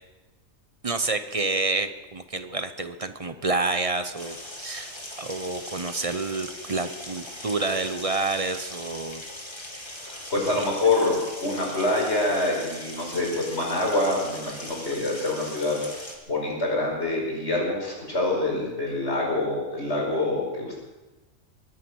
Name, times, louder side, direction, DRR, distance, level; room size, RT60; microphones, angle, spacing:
voice 1, 0.8-9.2 10.5-10.6, right 3 dB, 30° right, 9 dB, 0.8 m, -29 dB
sound 1, 4.1-16.2, left 1 dB, 20° left, 2.2 m, -40 dB
voice 2, 9.9-11.2 11.4-20.7, left 2 dB, 55° left, -2 dB, 5.4 m, -26 dB
22.5 x 10.0 x 6.3 m, 1.1 s
omnidirectional pair, 1.4 m